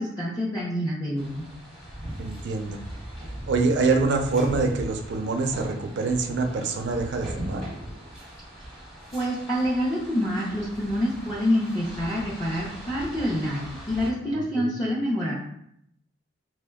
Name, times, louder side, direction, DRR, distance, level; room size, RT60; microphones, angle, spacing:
voice 1, 0.0-1.4 9.1-15.4, equal, 20° left, -8 dB, 0.5 m, -27 dB
sound 1, 1.2-14.1, right 1 dB, ahead, 0.8 m, -39 dB
voice 2, 2.2-2.8 3.5-7.6 14.2-14.7, right 3 dB, 70° right, 4 dB, 0.3 m, -25 dB
3.0 x 2.0 x 3.4 m, 0.73 s
head